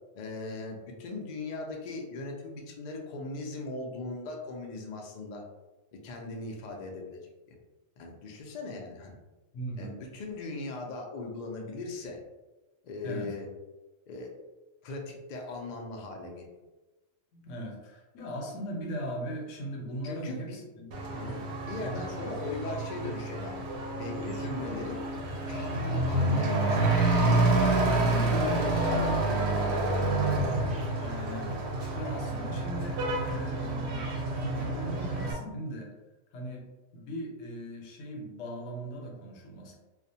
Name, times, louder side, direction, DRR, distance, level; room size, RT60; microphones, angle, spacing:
voice 1, 0.1-5.4 5.9-7.2 7.5-7.6 8.0-9.1 9.8-12.2 12.8-13.5 14.1-14.3 14.8-16.5 20.0-20.6 21.1-25.0 25.5-30.1, left 3 dB, 65° left, 1 dB, 0.4 m, -39 dB
voice 2, 9.5-10.0 13.0-13.3 17.3-20.9 21.8-22.1 24.6-24.8 30.9-31.6 31.9-35.9 36.3-36.6 36.9-39.8, equal, 85° left, 0 dB, 1.0 m, -39 dB
Truck / Accelerating revving vroom, 20.9-35.3, right 2 dB, 70° right, 0.8 m, -28 dB
2.4 x 2.1 x 2.6 m, 1.1 s
omnidirectional pair, 1.3 m